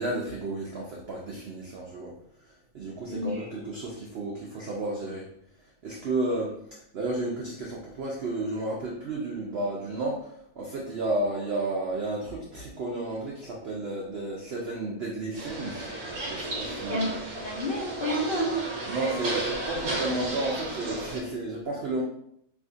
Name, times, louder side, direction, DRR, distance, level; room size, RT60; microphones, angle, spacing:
voice 1, 0.0-2.1 2.4-5.3 5.8-15.9 16.2-17.1 18.9-22.0, right 2 dB, 85° right, -2 dB, 0.5 m, -32 dB
voice 2, 3.1-3.4 16.9-18.6, equal, 70° left, -6 dB, 0.5 m, -30 dB
sound 1, 15.3-21.2, right 2 dB, 60° right, 1.2 m, -33 dB
3.5 x 2.4 x 2.5 m, 0.71 s
omnidirectional pair, 1.7 m